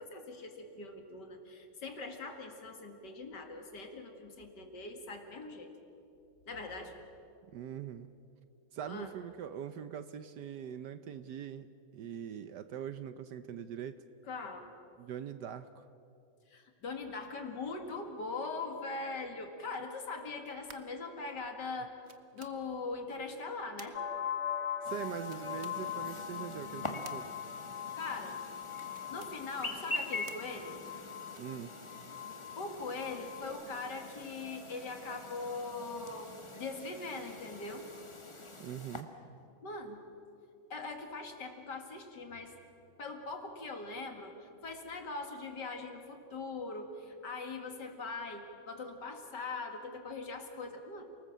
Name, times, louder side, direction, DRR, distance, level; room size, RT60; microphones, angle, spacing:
voice 1, 0.0-5.7 6.5-7.0 8.8-9.1 14.2-14.7 16.5-21.9 22.3-24.0 27.9-28.4 29.1-30.8 32.6-37.9 39.6-40.0 40.7-42.5 43.0-51.0, left 3 dB, 60° left, 5 dB, 2.6 m, -41 dB
voice 2, 7.5-8.1 8.7-11.7 11.9-14.0 15.0-15.9 24.8-27.3 31.4-31.7 38.6-39.1, right 9 dB, 65° right, 12 dB, 1.2 m, -42 dB
sound 1, 20.3-21.1 21.8-21.9 22.0-22.5 23.8-23.9 25.2-25.8 27.0-27.2 28.8-29.3 30.3-30.4 31.3-31.6, right 6 dB, 40° right, 1.2 m, -52 dB
sound 2, 23.9-33.4, left 9 dB, 40° left, 1.6 m, -41 dB
Chirp tweet, 24.8-39.0, left 2 dB, 15° left, 1.4 m, -45 dB
28.5 x 19.5 x 7.4 m, 2.6 s
omnidirectional pair, 2.2 m